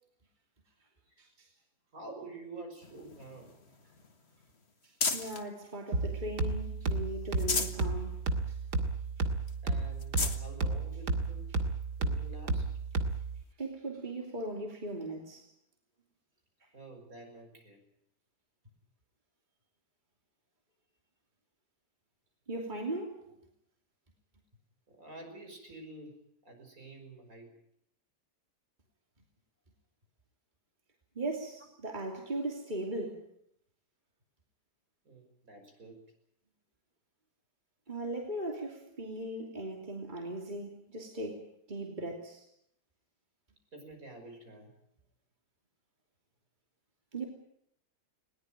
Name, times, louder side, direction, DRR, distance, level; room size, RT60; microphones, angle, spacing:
voice 1, 1.2-1.5 4.8-8.2 8.5-8.6 13.6-15.4 22.5-23.2 31.1-33.3 37.9-42.4 47.1-47.3, right 1 dB, 25° right, 1 dB, 3.0 m, -38 dB
voice 2, 1.9-3.5 9.6-11.5 12.0-12.6 16.7-17.8 23.3-23.4 24.9-26.2 26.4-27.5 35.0-36.0 43.7-44.7, right 2 dB, 55° right, 3 dB, 6.3 m, -48 dB
sound 1, 2.8-5.5 6.0-6.8 7.2-7.9 8.3-8.4 8.8-8.9 9.5-9.6 9.9-10.4 11.2-11.3 13.1-13.2, left 4 dB, 40° left, 1.9 m, -36 dB
sound 2, 5.9-13.4, right 3 dB, 75° right, 2.5 m, -33 dB
21.0 x 19.0 x 9.0 m, 0.73 s
omnidirectional pair, 1.8 m